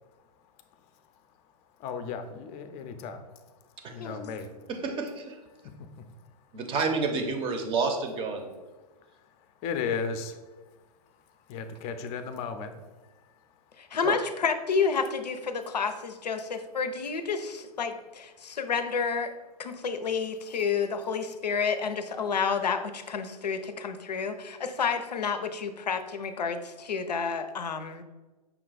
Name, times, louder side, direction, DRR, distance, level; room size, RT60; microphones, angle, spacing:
voice 1, 0.0-4.7 5.5-6.6 8.8-14.0 18.4-18.6 19.7-19.8 24.2-24.6, left 5 dB, 30° left, 8 dB, 0.4 m, -39 dB
voice 2, 4.8-5.4 6.5-8.5 13.9-14.1, right 4 dB, 25° right, 5 dB, 0.6 m, -29 dB
voice 3, 13.8-28.0, left 5 dB, 90° left, 9 dB, 0.5 m, -30 dB
5.6 x 2.2 x 3.9 m, 1.2 s
hypercardioid pair, 115°, 20 cm